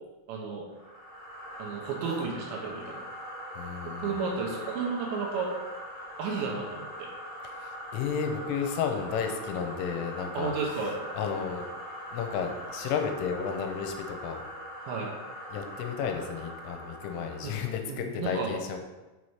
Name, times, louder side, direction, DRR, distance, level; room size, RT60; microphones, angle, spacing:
voice 1, 0.3-0.7 1.6-3.0 3.8-5.6 6.2-7.1 10.3-11.0 14.9-15.1 17.4-17.6 17.9-18.5, right 4 dB, 75° right, -1 dB, 3.0 m, -33 dB
Wind Through a Pipe, 0.7-17.7, equal, 30° right, 0.6 m, -42 dB
voice 2, 3.6-4.2 7.6-10.5 11.2-11.7 12.1-14.4 15.5-18.8, left 6 dB, 90° left, 4 dB, 3.2 m, -32 dB
7.9 x 4.2 x 4.8 m, 1.2 s
omnidirectional pair, 5.7 m